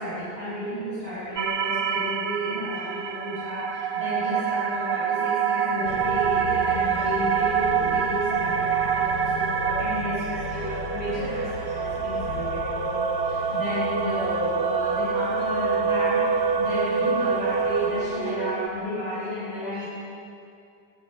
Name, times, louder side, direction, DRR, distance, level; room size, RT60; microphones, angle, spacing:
voice 1, 0.0-19.9, equal, 30° right, -13 dB, 7.5 m, -32 dB
sound 1, 1.4-18.7, right 6 dB, 55° right, 0.7 m, -26 dB
sound 2, 5.8-18.3, left 5 dB, 85° left, 2.0 m, -37 dB
27.0 x 17.5 x 6.7 m, 2.6 s
omnidirectional pair, 2.0 m